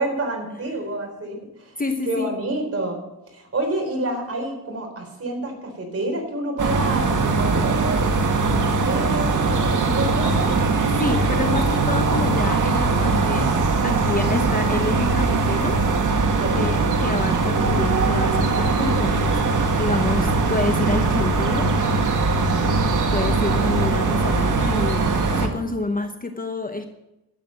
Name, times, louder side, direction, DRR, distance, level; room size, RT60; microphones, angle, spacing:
voice 1, 0.0-1.8 2.0-3.0 3.3-8.1 8.4-10.6 16.3-16.7 22.4-22.8, right 2 dB, 40° right, 3 dB, 4.2 m, -28 dB
voice 2, 1.8-2.3 11.0-13.5 13.8-15.8 16.5-21.7 23.1-25.1 25.4-26.9, left 3 dB, 25° left, 6 dB, 1.0 m, -28 dB
sound 1, 6.6-25.5, right 3 dB, 55° right, 1.9 m, -21 dB
12.5 x 8.3 x 7.4 m, 0.93 s
cardioid pair, 100°, 36 cm